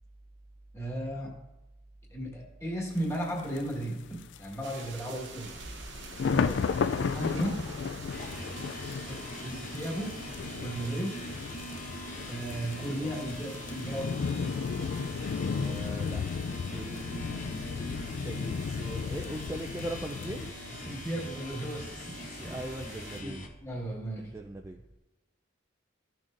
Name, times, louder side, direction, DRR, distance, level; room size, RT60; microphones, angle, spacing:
voice 1, 0.7-1.4 2.1-5.5 7.0-7.7 8.8-10.2 10.6-11.2 12.3-14.1 20.7-22.6 23.1-23.3 23.6-24.3, right 1 dB, 15° left, -2 dB, 1.6 m, -35 dB
sound 1, 3.0-3.1 3.6-3.7 4.3-4.7 5.2-20.5, left 5 dB, 60° left, 0.3 m, -34 dB
sound 2, 4.6-23.2, right 4 dB, 65° right, 0.9 m, -47 dB
sound 3, 8.1-23.5, left 1 dB, 40° left, 0.9 m, -43 dB
voice 2, 15.4-16.2 16.7-20.5 21.9-23.5 24.2-24.8, right 1 dB, 15° right, 2 dB, 0.4 m, -41 dB
14.0 x 6.2 x 2.6 m, 1.0 s
head